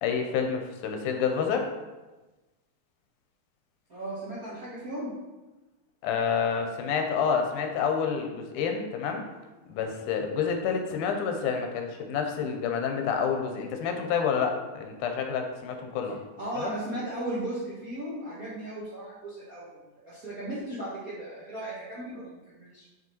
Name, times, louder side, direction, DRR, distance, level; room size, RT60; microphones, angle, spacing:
voice 1, 0.0-1.7 6.0-9.2 9.7-16.2 16.6-16.7, left 6 dB, 85° left, 4 dB, 2.1 m, -28 dB
voice 2, 3.9-5.1 16.4-19.8 20.0-22.8, right 1 dB, 60° right, -9 dB, 0.9 m, -36 dB
6.0 x 5.2 x 3.0 m, 1.1 s
omnidirectional pair, 3.6 m